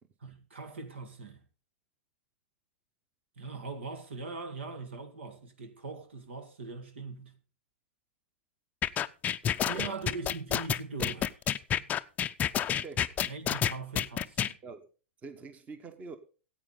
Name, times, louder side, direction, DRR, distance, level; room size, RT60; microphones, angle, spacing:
voice 1, 0.2-1.4 3.4-7.4 9.7-11.4 11.8-11.9 13.3-14.6, right 4 dB, 75° right, 1.9 m, -41 dB
sound 1, 8.8-14.5, left 10 dB, 25° left, 0.5 m, -29 dB
voice 2, 9.4-10.0 12.7-13.1 14.6-14.9 15.2-16.2, right 4 dB, 25° right, 1.2 m, -46 dB
14.5 x 8.6 x 3.8 m
hypercardioid pair, 110°, 6 cm